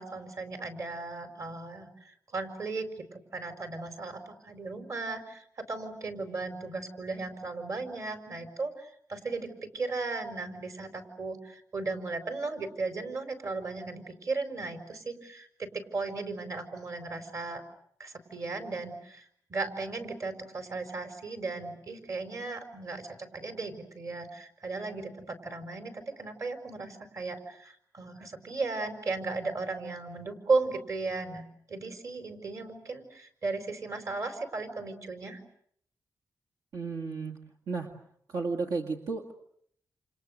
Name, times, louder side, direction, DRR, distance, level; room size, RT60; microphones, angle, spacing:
voice 1, 0.0-17.6 18.0-19.2 19.5-31.4 31.7-35.4, right 3 dB, 50° right, 8 dB, 4.7 m, -36 dB
voice 2, 36.7-37.4 37.7-37.9 38.3-39.3, right 4 dB, 80° right, 3 dB, 2.2 m, -33 dB
29.0 x 29.0 x 6.6 m, 0.66 s
wide cardioid pair, 145°, 7 cm